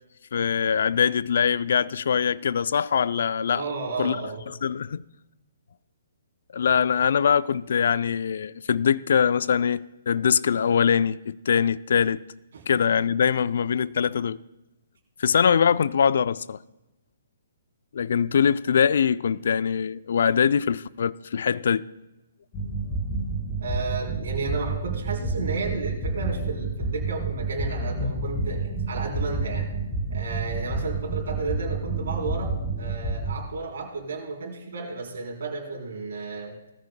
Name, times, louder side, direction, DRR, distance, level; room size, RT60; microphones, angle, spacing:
voice 1, 0.3-3.6 4.0-4.2 4.6-5.0 6.5-12.2 12.7-14.4 15.2-16.6 17.9-21.8, left 7 dB, 65° left, 0.4 m, -23 dB
voice 2, 3.5-4.5 23.6-29.7 30.1-36.5, right 4 dB, 65° right, 3.6 m, -33 dB
sound 1, 22.5-33.3, right 3 dB, 30° left, 5.3 m, -29 dB
19.5 x 14.0 x 2.2 m
figure-of-eight pair, 135°, 0 cm